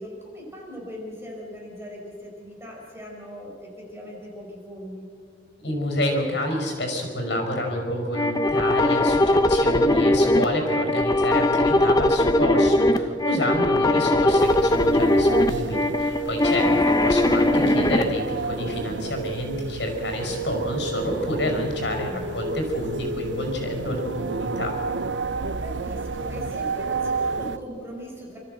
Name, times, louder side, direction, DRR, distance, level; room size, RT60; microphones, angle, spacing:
voice 1, 0.0-5.1 16.2-16.9 21.9-22.4 25.6-28.4, equal, 15° right, -2 dB, 5.0 m, -39 dB
voice 2, 5.6-24.7, left 1 dB, 70° left, 3 dB, 5.5 m, -28 dB
sound 1, 8.1-18.0, left 1 dB, 20° left, 0.8 m, -20 dB
sound 2, 14.4-27.6, right 4 dB, 80° right, 0.8 m, -31 dB
28.5 x 13.5 x 8.0 m, 2.2 s
head